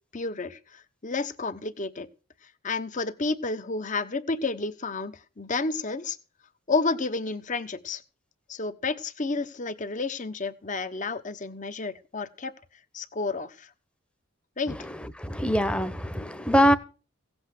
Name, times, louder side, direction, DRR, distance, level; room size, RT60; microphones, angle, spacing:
voice 1, 0.1-2.1 2.6-6.2 6.7-8.0 8.5-12.5 12.9-13.7 14.6-14.8, left 3 dB, 35° left, 1.0 m, -31 dB
voice 2, 15.2-16.7, equal, 5° left, 1.0 m, -23 dB
17.0 x 8.1 x 6.5 m
head